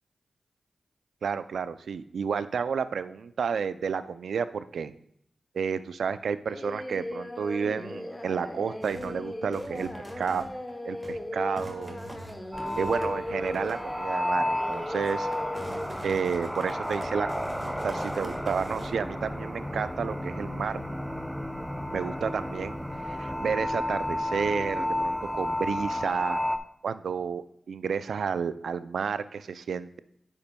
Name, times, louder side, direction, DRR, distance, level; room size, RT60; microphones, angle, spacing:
voice 1, 1.2-4.9 5.5-9.9 10.2-10.4 10.8-12.0 12.7-15.3 16.0-20.8 21.9-22.8 23.0-26.4 26.8-30.0, right 6 dB, 80° right, 14 dB, 0.3 m, -31 dB
Singing, 6.5-15.9, left 1 dB, 20° left, 1.0 m, -37 dB
sound 1, 8.8-9.2 9.5-10.7 11.0-11.2 11.6-13.9 14.3-14.4 14.7-18.9, right 1 dB, 30° right, 1.6 m, -44 dB
sound 2, 12.5-26.6, left 1 dB, 5° right, 0.7 m, -32 dB
9.6 x 7.1 x 2.2 m, 0.72 s
cardioid pair, 45°, 0 cm